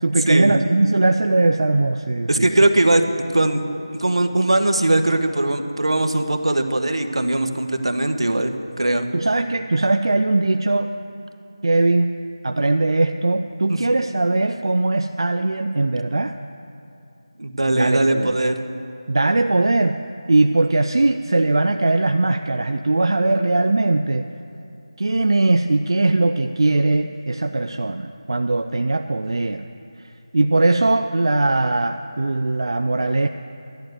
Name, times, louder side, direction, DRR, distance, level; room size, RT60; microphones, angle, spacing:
voice 1, 0.0-2.5 9.1-10.9 11.6-12.1 12.4-16.4 17.7-18.3 19.1-20.0 20.3-24.3 25.0-29.6 30.3-33.3, right 2 dB, 60° right, 6 dB, 0.5 m, -20 dB
voice 2, 2.3-3.0 3.3-3.6 4.0-9.1 13.7-13.8 17.4-18.6, right 2 dB, 80° right, 6 dB, 1.3 m, -20 dB
11.5 x 8.0 x 9.3 m, 2.7 s
figure-of-eight pair, 175°, 3 cm